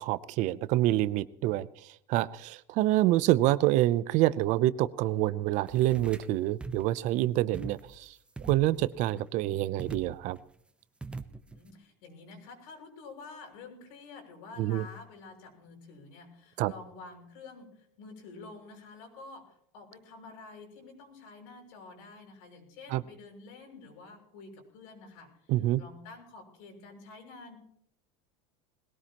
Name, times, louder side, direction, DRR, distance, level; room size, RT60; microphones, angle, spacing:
voice 1, 0.0-8.1 8.4-10.4 14.6-14.9 16.6-16.7 22.9-23.0 25.5-25.8, right 15 dB, 45° right, 17 dB, 0.6 m, -27 dB
sound 1, 5.7-6.3 6.6-7.0 7.5-8.1 8.4-9.2 9.8-10.4 11.0-11.7, right 3 dB, 5° right, 0.6 m, -42 dB
voice 2, 11.5-27.6, left 3 dB, 75° left, 2 dB, 6.4 m, -49 dB
21.0 x 17.0 x 3.0 m, 0.69 s
cardioid pair, 155°, 17 cm